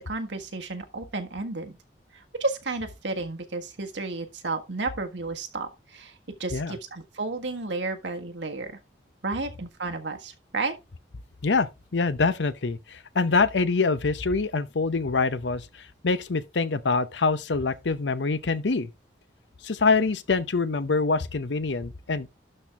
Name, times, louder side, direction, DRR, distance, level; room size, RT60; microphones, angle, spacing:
voice 1, 0.1-1.7 2.1-8.8 9.2-10.7, right 3 dB, 90° right, 1.5 m, -32 dB
voice 2, 11.4-18.9 19.6-22.3, left 4 dB, 90° left, 0.7 m, -25 dB
12.0 x 4.4 x 3.4 m
head